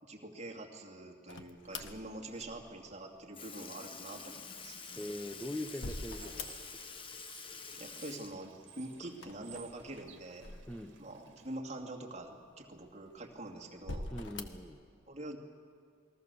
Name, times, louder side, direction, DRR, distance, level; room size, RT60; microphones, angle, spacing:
voice 1, 0.0-4.8 7.4-7.5 7.8-10.5 11.0-14.1 15.1-15.4, right 1 dB, 30° right, 0 dB, 2.4 m, -45 dB
sound 1, 1.3-2.9 4.8-7.0 7.3-8.0 9.1-11.2 11.8-11.9 12.7-13.3 13.8-14.7, left 2 dB, 60° left, 1.5 m, -45 dB
Sink (filling or washing) / Liquid, 2.9-3.0 3.3-9.4 9.8-9.9 11.4-11.5 12.5-12.6 13.4-13.6 14.4-14.5, left 5 dB, 25° left, 1.1 m, -48 dB
Bird / Water, 4.1-11.6, right 9 dB, 60° right, 2.0 m, -59 dB
voice 2, 5.0-6.8 10.7-11.0 14.1-14.8, left 1 dB, 5° left, 5 dB, 0.9 m, -42 dB
28.5 x 21.0 x 7.0 m, 2.3 s
head